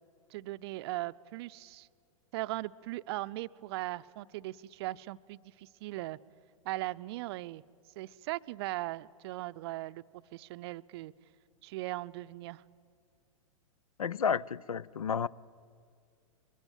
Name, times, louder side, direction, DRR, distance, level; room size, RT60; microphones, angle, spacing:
voice 1, 0.3-1.9 2.3-6.2 6.6-7.6 8.0-10.0 10.3-11.1 11.6-12.6, right 18 dB, 45° right, 0.5 m, -39 dB
voice 2, 14.0-15.3, left 7 dB, 85° left, 0.5 m, -31 dB
21.5 x 16.5 x 9.2 m
figure-of-eight pair, 105°, 18 cm